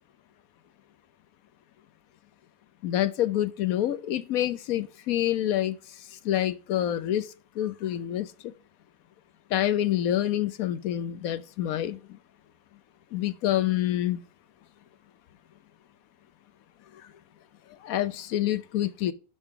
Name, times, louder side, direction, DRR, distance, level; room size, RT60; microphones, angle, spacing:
voice 1, 2.8-5.8 6.3-7.2 7.6-8.2 9.5-12.0 13.1-14.2 17.8-19.1, left 12 dB, 70° left, 1.1 m, -27 dB
11.0 x 5.8 x 3.7 m
omnidirectional pair, 1.6 m